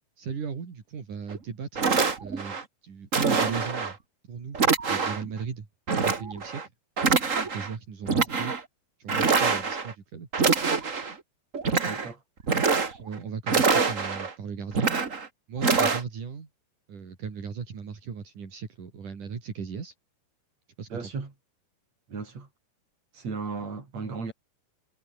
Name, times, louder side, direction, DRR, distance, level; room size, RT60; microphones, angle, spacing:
voice 1, 0.2-1.9 2.2-2.6 2.8-4.0 4.3-5.7 6.0-6.7 7.5-8.5 9.0-10.3 13.0-15.0 15.5-16.5 16.9-19.9 20.8-21.1, right 6 dB, 70° right, 5.4 m, -37 dB
sound 1, 1.3-1.4 1.8-2.6 3.1-3.9 4.5-5.3 5.9-6.6 7.0-7.7 8.0-8.6 9.1-9.9 10.3-11.1 11.5-12.1 12.4-13.1 13.5-14.3 14.7-15.3 15.6-16.0, right 5 dB, 30° right, 1.8 m, -25 dB
voice 2, 11.8-12.2 12.9-13.0 20.9-21.3 22.1-22.5 23.1-24.3, right 4 dB, 55° right, 6.6 m, -35 dB
omnidirectional pair, 3.7 m